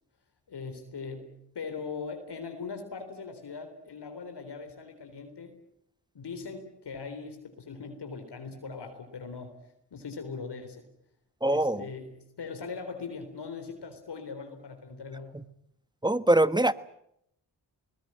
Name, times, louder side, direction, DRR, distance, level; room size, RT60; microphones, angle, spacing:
voice 1, 0.5-5.6 6.1-9.6 9.9-10.8 11.5-12.1 12.4-15.3, left 5 dB, 70° left, 6 dB, 3.9 m, -40 dB
voice 2, 11.4-11.8 16.0-16.7, right 1 dB, 10° right, 15 dB, 1.1 m, -23 dB
21.0 x 19.5 x 10.0 m, 0.76 s
cardioid pair, 55°, 42 cm